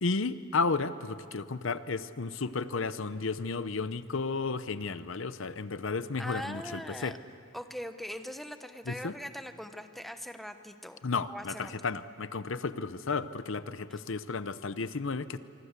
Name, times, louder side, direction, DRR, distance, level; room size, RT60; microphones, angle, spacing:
voice 1, 0.0-7.1 8.9-9.1 11.0-15.4, left 4 dB, 60° left, 14 dB, 0.7 m, -33 dB
voice 2, 6.2-7.2 7.5-11.0 11.3-11.7 13.9-14.0, equal, ahead, 8 dB, 0.9 m, -41 dB
25.5 x 25.0 x 8.2 m, 2.5 s
head